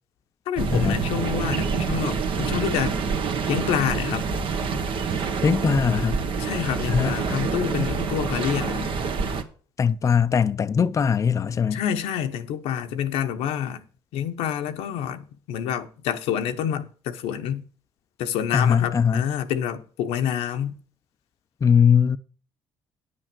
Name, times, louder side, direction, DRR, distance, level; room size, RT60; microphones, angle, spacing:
voice 1, 0.5-3.0 3.5-4.3 6.4-8.9 11.7-13.8 14.1-17.6 18.2-20.8, left 9 dB, 85° left, 1.0 m, -27 dB
sound 1, 0.6-9.4, right 5 dB, 60° right, 1.4 m, -27 dB
voice 2, 5.2-6.2 6.9-7.2 9.8-11.8 18.5-19.2 21.6-22.2, left 7 dB, 35° left, 0.5 m, -21 dB
9.8 x 6.5 x 6.1 m
cardioid pair, 90°, 10 cm